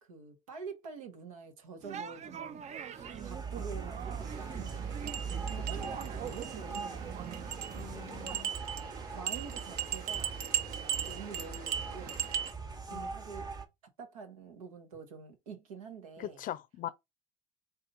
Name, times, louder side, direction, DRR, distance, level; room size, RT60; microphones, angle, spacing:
voice 1, 0.0-2.6 3.2-4.8 5.5-7.5 9.1-10.4 11.0-12.3 12.9-13.5 14.0-16.4, right 5 dB, 90° right, 1.1 m, -47 dB
sound 1, 1.8-8.4, right 8 dB, 40° right, 0.5 m, -44 dB
sound 2, 3.0-13.7, right 5 dB, 20° right, 0.9 m, -41 dB
sound 3, 4.2-12.5, right 9 dB, 60° right, 0.9 m, -38 dB
voice 2, 7.8-8.5 12.9-13.1 16.2-16.9, left 12 dB, 50° left, 0.5 m, -41 dB
4.0 x 2.8 x 3.9 m
hypercardioid pair, 65°, 17 cm